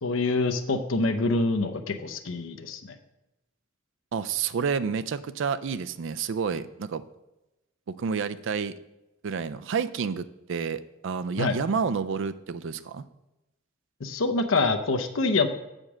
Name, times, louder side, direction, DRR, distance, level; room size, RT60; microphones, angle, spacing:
voice 1, 0.0-2.9 11.4-11.5 14.0-15.5, left 3 dB, 75° left, 7 dB, 0.7 m, -26 dB
voice 2, 4.1-7.0 7.9-8.8 9.2-13.0, right 6 dB, 65° right, 13 dB, 0.4 m, -29 dB
7.2 x 5.2 x 6.2 m, 0.97 s
head